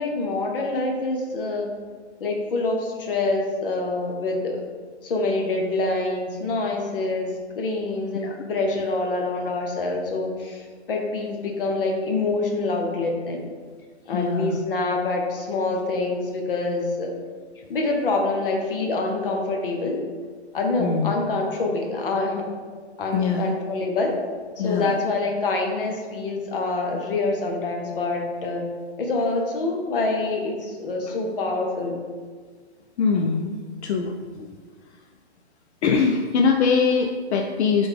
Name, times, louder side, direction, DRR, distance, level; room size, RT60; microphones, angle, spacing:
voice 1, 0.0-1.7 2.2-4.6 5.0-13.4 14.1-17.1 17.7-20.0 20.5-22.5 23.0-24.2 24.6-28.6 29.0-32.0, left 3 dB, 55° left, 1 dB, 0.9 m, -26 dB
voice 2, 14.1-14.6 20.8-21.1 23.1-23.5 24.6-24.9 31.1-31.2 33.0-34.5 35.8-37.9, left 5 dB, 75° left, 3 dB, 0.5 m, -23 dB
3.9 x 3.4 x 3.3 m, 1.5 s
hypercardioid pair, 170°, 33 cm